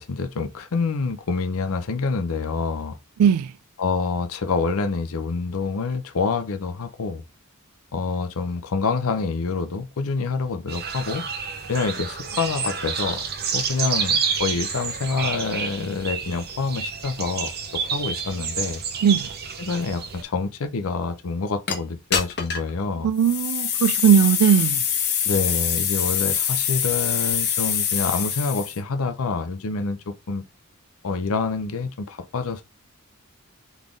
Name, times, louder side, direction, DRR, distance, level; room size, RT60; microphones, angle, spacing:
voice 1, 0.0-3.0 3.8-7.2 7.9-11.2 11.7-13.2 13.5-18.8 19.6-23.1 25.2-30.4 31.0-32.6, left 4 dB, 70° left, 0.6 m, -27 dB
voice 2, 3.2-3.5 19.0-19.3 23.0-24.8, right 8 dB, 75° right, 0.3 m, -18 dB
sound 1, 10.7-20.2, right 6 dB, 45° right, 0.8 m, -29 dB
sound 2, 21.7-21.8 22.1-22.7 23.2-28.8, left 8 dB, 50° left, 0.9 m, -24 dB
4.0 x 3.4 x 3.6 m
head